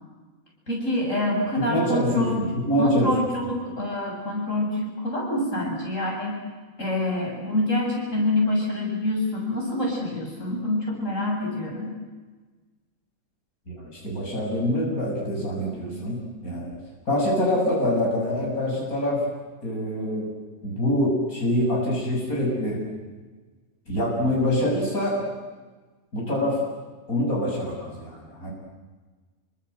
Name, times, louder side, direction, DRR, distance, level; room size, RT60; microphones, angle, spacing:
voice 1, 0.7-2.4 2.8-6.4 6.8-11.9, left 1 dB, 60° left, -1 dB, 8.1 m, -26 dB
voice 2, 1.6-3.1 13.7-16.7 17.1-19.2 19.6-20.3 20.6-22.8 23.9-25.2 26.1-26.6 27.1-28.5, left 1 dB, 80° left, -2 dB, 7.6 m, -25 dB
28.0 x 25.5 x 8.0 m, 1.3 s
omnidirectional pair, 1.5 m